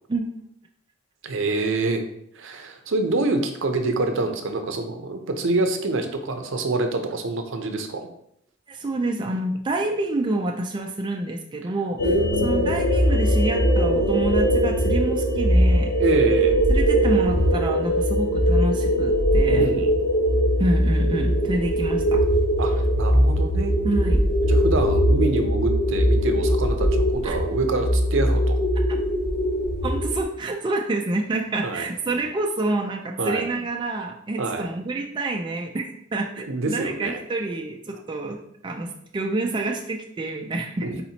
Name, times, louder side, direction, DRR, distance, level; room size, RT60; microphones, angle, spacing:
voice 1, 1.2-2.0 2.4-8.1 12.0-12.7 16.0-16.6 19.5-20.0 22.6-23.7 24.4-28.6 31.6-31.9 33.2-33.4 34.4-34.7 36.5-37.2 40.8-41.0, right 2 dB, 70° right, 6 dB, 0.6 m, -26 dB
voice 2, 8.7-12.0 12.4-15.9 16.7-19.7 20.6-22.2 23.8-24.2 27.2-27.4 28.9-29.0 29.8-38.4 38.6-41.0, right 2 dB, 25° right, 2 dB, 0.3 m, -27 dB
sound 1, 12.0-30.2, equal, 60° left, 0.8 m, -21 dB
4.2 x 4.1 x 2.8 m, 0.73 s
head